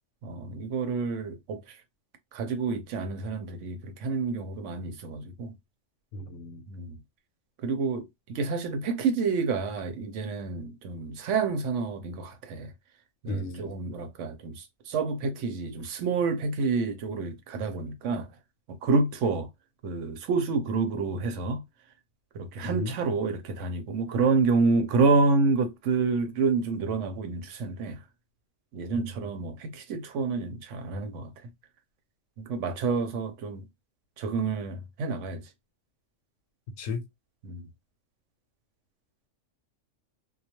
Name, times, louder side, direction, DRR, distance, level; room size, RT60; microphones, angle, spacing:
voice 1, 0.2-1.8 2.3-5.5 6.7-7.0 7.6-12.7 13.2-18.3 18.7-19.5 19.8-21.6 22.3-28.0 28.7-31.3 32.4-33.7 34.2-35.4 37.4-37.7, right 4 dB, 75° right, 0.9 m, -28 dB
voice 2, 6.1-6.6 13.3-13.7 22.6-22.9 28.9-29.3 36.8-37.0, left 2 dB, 85° left, 1.0 m, -34 dB
2.3 x 2.1 x 2.8 m
omnidirectional pair, 1.3 m